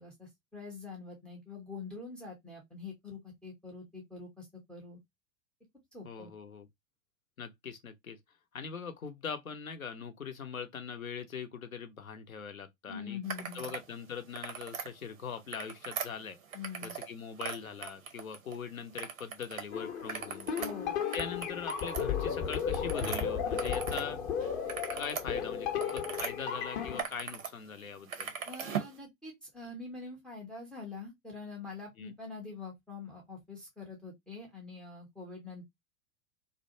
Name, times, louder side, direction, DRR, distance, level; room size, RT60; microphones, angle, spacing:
voice 1, 0.0-5.0 5.9-6.3 12.9-13.7 16.5-17.0 20.6-21.0 28.5-35.6, left 4 dB, ahead, 0.3 m, -45 dB
voice 2, 6.0-6.7 7.4-8.2 8.5-13.2 13.5-16.4 16.8-20.7 21.1-24.2 24.9-28.3 32.0-32.1, left 6 dB, 80° left, 0.6 m, -41 dB
sound 1, 13.2-13.8 14.2-14.9 15.4-17.1 17.4-18.6 19.0-19.6 20.0-24.1 24.4-26.3 26.8-27.5 27.8-29.0, right 6 dB, 75° right, 0.7 m, -40 dB
sound 2, 19.7-27.0, left 7 dB, 35° left, 0.7 m, -34 dB
2.5 x 2.1 x 2.6 m
figure-of-eight pair, 90°, 40 cm